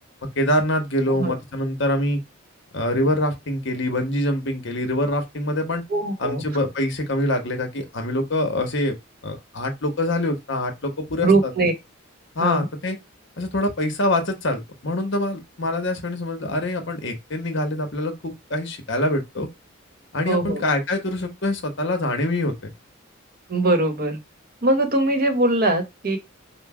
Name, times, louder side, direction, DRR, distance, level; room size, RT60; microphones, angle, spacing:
voice 1, 0.2-2.2 2.7-5.8 6.2-9.0 9.2-11.5 12.3-13.0 13.4-19.5 20.1-22.5, left 1 dB, 60° left, 1.1 m, -25 dB
voice 2, 5.9-6.4 11.2-11.7 12.4-12.6 20.3-20.6 23.5-24.2 24.6-26.2, right 2 dB, 45° right, 1.0 m, -21 dB
4.9 x 2.1 x 4.7 m
head